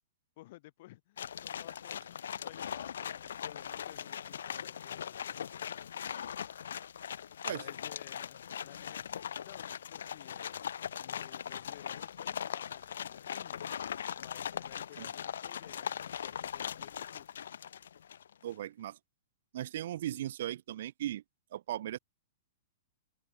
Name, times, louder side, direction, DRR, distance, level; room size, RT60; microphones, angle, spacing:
voice 1, 0.4-5.7 7.5-9.1 9.4-10.7 11.0-13.6 14.2-17.3, left 17 dB, 50° left, 1.9 m, -55 dB
sound 1, 1.2-18.3, left 8 dB, 85° left, 1.3 m, -40 dB
voice 2, 18.4-19.0 19.5-21.2 21.5-22.0, right 12 dB, 60° right, 0.3 m, -37 dB
hypercardioid pair, 155°, 0 cm